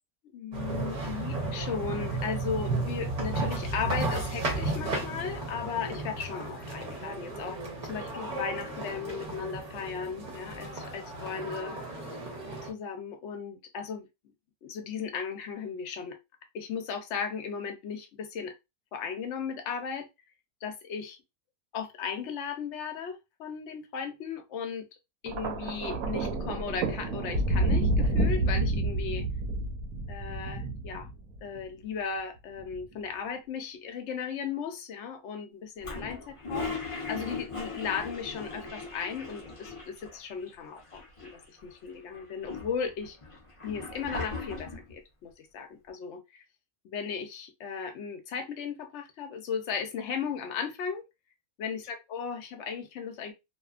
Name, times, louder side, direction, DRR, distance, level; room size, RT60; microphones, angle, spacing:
voice 1, 0.3-11.8 12.6-14.1 14.6-16.2 16.5-18.5 18.9-20.1 20.6-21.2 21.7-24.9 25.2-29.3 30.1-31.1 31.4-43.2 43.6-46.4 46.8-51.0 51.6-53.3, left 6 dB, 65° left, 0.8 m, -36 dB
sound 1, 0.5-12.7, right 2 dB, 40° right, 0.7 m, -34 dB
Thunder, 25.3-31.6 32.6-32.9, right 2 dB, 80° right, 1.1 m, -29 dB
Toilet flush, 35.8-40.2 40.5-40.6 40.8-41.6 42.1-44.9, left 3 dB, 35° left, 0.5 m, -38 dB
2.7 x 2.2 x 2.4 m
omnidirectional pair, 1.5 m